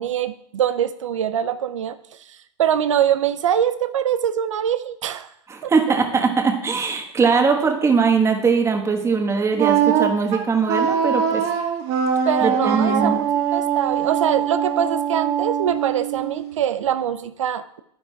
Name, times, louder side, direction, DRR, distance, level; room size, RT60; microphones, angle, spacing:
voice 1, 0.0-5.3 5.6-5.7 12.3-17.8, right 9 dB, 85° right, 12 dB, 0.4 m, -23 dB
voice 2, 5.5-11.4 12.4-13.2, right 5 dB, 15° right, 4 dB, 1.3 m, -20 dB
Wind instrument woodwind instrument, 9.6-16.5, right 8 dB, 45° right, 1.4 m, -22 dB
10.5 x 10.0 x 2.3 m, 0.74 s
hypercardioid pair, 105°, 16 cm